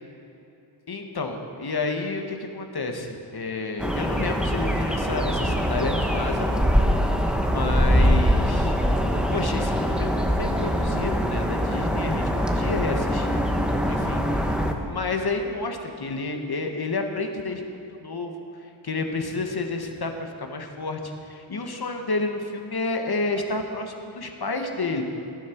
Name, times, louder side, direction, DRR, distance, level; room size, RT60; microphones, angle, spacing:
voice 1, 0.9-6.7 7.3-8.7 9.3-13.5 13.9-25.0, left 3 dB, 50° left, 4 dB, 1.5 m, -30 dB
sound 1, 3.8-14.7, equal, ahead, 1.1 m, -23 dB
18.0 x 12.0 x 4.6 m, 2.9 s
wide cardioid pair, 100°, 49 cm